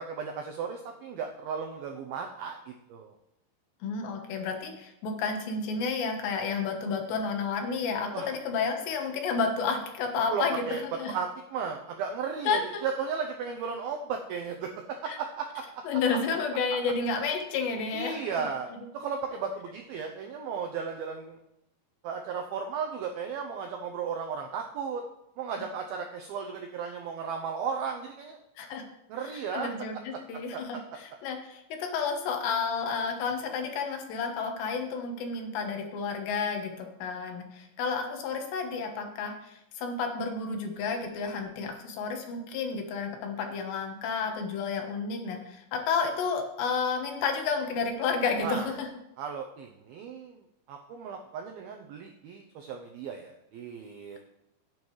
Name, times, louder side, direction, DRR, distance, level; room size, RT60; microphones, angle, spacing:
voice 1, 0.0-3.1 8.1-8.3 10.3-15.8 16.7-16.8 17.9-18.7 18.9-21.4 22.0-25.0 25.4-28.4 29.1-29.7 30.5-30.8 48.4-48.7 49.2-50.4 50.7-54.2, right 6 dB, 85° right, 3 dB, 2.1 m, -35 dB
voice 2, 3.8-10.6 11.0-11.2 12.5-12.8 15.1-15.2 15.8-18.2 28.6-28.8 29.5-48.9, left 5 dB, 75° left, 3 dB, 3.4 m, -31 dB
16.0 x 8.8 x 3.2 m, 0.84 s
omnidirectional pair, 5.2 m